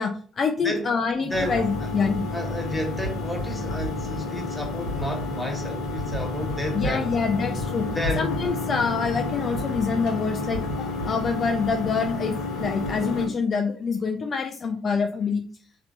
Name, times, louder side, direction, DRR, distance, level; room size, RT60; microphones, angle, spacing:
voice 1, 0.0-2.3 6.7-15.4, left 5 dB, 45° left, 0.4 m, -26 dB
voice 2, 1.2-1.9 2.3-7.1 7.8-8.3, left 1 dB, 10° left, 1.2 m, -31 dB
sound 1, 1.3-13.3, left 2 dB, 80° left, 0.9 m, -30 dB
3.2 x 2.8 x 2.5 m
hypercardioid pair, 55°, 0 cm